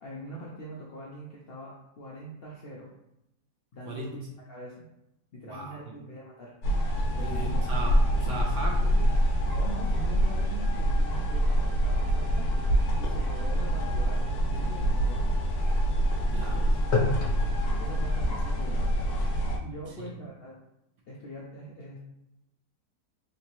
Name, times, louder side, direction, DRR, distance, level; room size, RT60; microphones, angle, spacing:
voice 1, 0.0-2.9 3.7-4.2 4.5-4.9 5.3-6.5 7.1-7.7 9.5-12.5 13.0-15.3 16.5-16.6 17.8-19.1 19.6-20.5 21.1-22.0, equal, 65° left, -4 dB, 0.5 m, -43 dB
voice 2, 5.4-6.0 7.2-9.3 16.3-16.7 19.9-20.1, right 2 dB, 65° right, -1 dB, 0.8 m, -37 dB
sound 1, 6.6-19.6, equal, 90° left, 1.2 m, -25 dB
3.5 x 2.8 x 2.9 m, 0.86 s
omnidirectional pair, 1.6 m